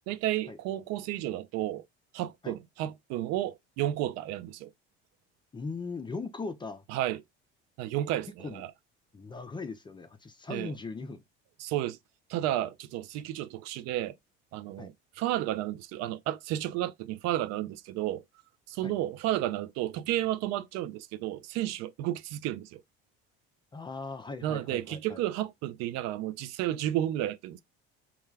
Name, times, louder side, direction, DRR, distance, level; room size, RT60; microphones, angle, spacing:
voice 1, 0.1-1.8 2.1-4.7 6.9-7.2 7.8-8.7 10.5-10.7 11.6-12.0 12.3-14.2 14.5-18.2 18.7-22.8 24.4-27.6, right 13 dB, 65° right, 0.4 m, -32 dB
voice 2, 5.5-6.8 8.4-8.6 9.1-11.2 14.8-14.9 18.8-18.9 23.7-25.2, left 4 dB, 15° left, 0.4 m, -39 dB
2.3 x 2.2 x 3.2 m
supercardioid pair, 85°, 29 cm